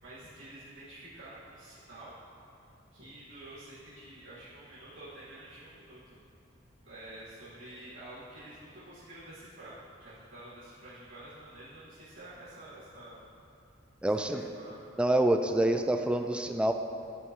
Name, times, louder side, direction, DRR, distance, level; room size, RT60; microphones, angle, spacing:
voice 1, 0.0-2.2 2.9-6.2 6.8-13.2 14.0-14.9, right 1 dB, 85° right, -13 dB, 2.0 m, -49 dB
voice 2, 14.0-14.5 15.0-16.7, right 1 dB, 5° right, 6 dB, 0.3 m, -26 dB
12.5 x 5.5 x 3.1 m, 2.5 s
head